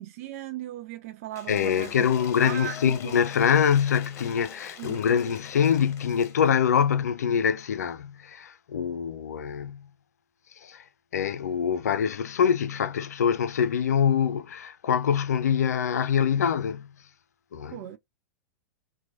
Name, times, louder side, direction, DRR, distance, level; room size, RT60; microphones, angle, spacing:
voice 1, 0.0-1.9 2.4-3.2 4.8-5.0 17.7-18.0, right 12 dB, 55° right, 0.4 m, -37 dB
Cheering / Applause / Crowd, 1.3-6.5, left 7 dB, 35° left, 1.2 m, -45 dB
voice 2, 1.5-9.9 10.5-16.9 17.5-17.8, left 7 dB, 80° left, 0.4 m, -25 dB
4.4 x 2.2 x 2.4 m
hypercardioid pair, 110°, 9 cm